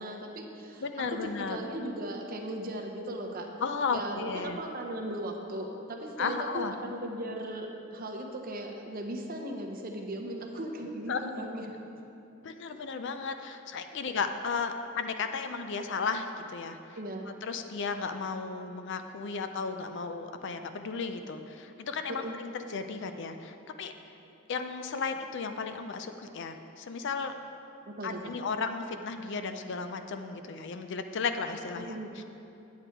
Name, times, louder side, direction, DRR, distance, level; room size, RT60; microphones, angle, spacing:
voice 1, 0.0-0.8 1.1-3.5 3.9-11.7 17.0-17.3 22.1-22.4 27.9-28.2 31.7-32.1, right 1 dB, 45° right, 2 dB, 1.0 m, -37 dB
voice 2, 0.8-1.6 3.6-4.6 6.2-6.8 11.1-11.3 12.4-17.0 17.4-23.9 24.5-27.3 28.0-32.2, left 5 dB, 60° left, 8 dB, 0.5 m, -34 dB
9.4 x 7.9 x 4.5 m, 2.8 s
head